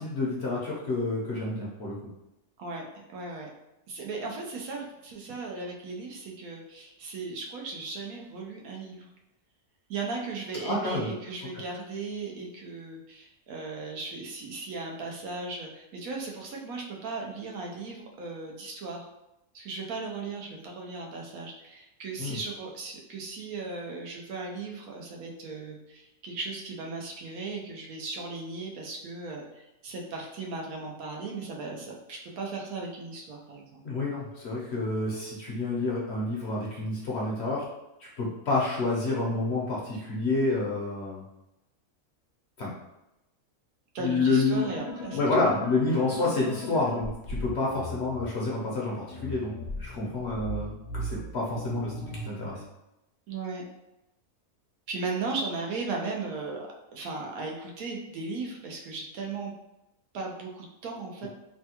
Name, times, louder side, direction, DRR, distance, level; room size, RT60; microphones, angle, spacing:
voice 1, 0.0-1.9 10.6-11.1 11.5-11.6 22.2-22.4 33.8-37.6 38.0-41.2 42.6-42.7 44.0-44.7 45.1-49.5 49.8-52.5, left 3 dB, 60° left, -4 dB, 0.9 m, -29 dB
voice 2, 2.6-3.5 3.9-9.1 9.9-19.1 19.5-33.8 43.9-45.7 53.3-53.6 54.9-59.5 60.1-61.3, right 3 dB, 90° right, 0 dB, 1.1 m, -37 dB
sound 1, 44.5-48.2 49.1-52.6, left 1 dB, 90° left, 1.1 m, -38 dB
3.3 x 2.2 x 2.8 m, 0.92 s
omnidirectional pair, 1.5 m